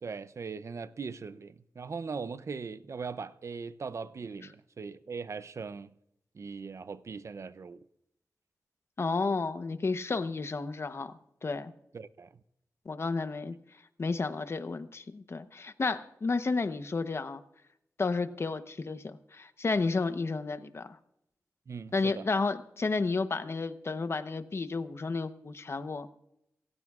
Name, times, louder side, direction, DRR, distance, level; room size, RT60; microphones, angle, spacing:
voice 1, 0.0-5.9 6.3-7.8 11.9-12.4 21.7-22.3, right 5 dB, 55° right, 0.6 m, -40 dB
voice 2, 9.0-11.7 12.9-13.6 14.0-17.4 18.0-21.0 21.9-26.1, left 3 dB, 45° left, 0.9 m, -32 dB
27.0 x 15.0 x 2.4 m
wide cardioid pair, 90°, 6 cm